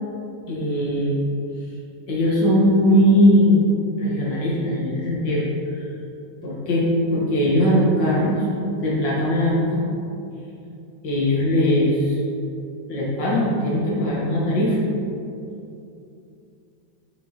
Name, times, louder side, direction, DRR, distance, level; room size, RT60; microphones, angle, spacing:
voice 1, 0.5-1.1 2.1-3.7 4.0-5.5 6.4-8.4 8.8-9.8 11.0-12.2 12.9-14.8, equal, 85° left, -6 dB, 2.1 m, -19 dB
6.5 x 5.4 x 2.9 m, 2.7 s
omnidirectional pair, 1.9 m